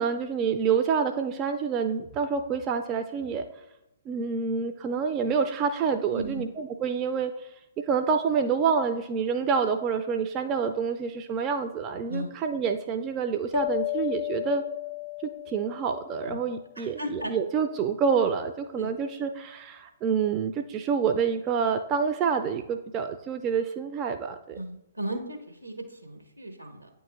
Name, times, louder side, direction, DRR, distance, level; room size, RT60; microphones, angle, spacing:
voice 1, 0.0-3.5 4.1-7.5 7.8-14.6 15.5-24.6, right 6 dB, 25° right, 6 dB, 0.3 m, -27 dB
voice 2, 6.1-6.5 12.1-12.3 16.2-16.4 16.8-17.3 18.8-18.9 24.5-26.9, right 1 dB, 80° right, 5 dB, 1.0 m, -35 dB
sound 1, 13.5-16.5, left 21 dB, 35° left, 0.5 m, -33 dB
9.0 x 3.0 x 3.6 m, 0.89 s
figure-of-eight pair, 120°, 0 cm